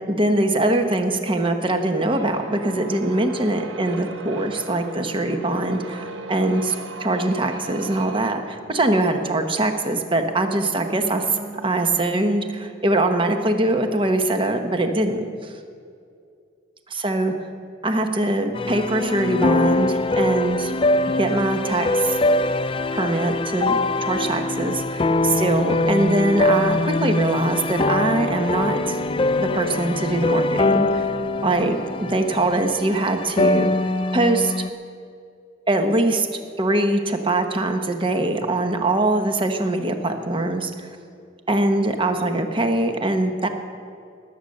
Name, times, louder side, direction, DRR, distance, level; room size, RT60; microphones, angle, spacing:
voice 1, 0.1-6.7 7.0-15.6 16.9-17.3 17.8-20.8 21.2-22.2 22.9-29.0 29.4-31.2 31.4-34.5 35.7-36.3 36.6-40.9 41.5-43.5, right 2 dB, 30° right, 6 dB, 1.1 m, -22 dB
sound 1, 1.9-12.3, right 2 dB, 85° right, 1.0 m, -39 dB
sound 2, 18.6-34.7, left 2 dB, 30° left, 0.4 m, -23 dB
sound 3, 25.5-33.1, equal, 60° right, 4.0 m, -39 dB
19.0 x 8.6 x 6.6 m, 2.4 s
head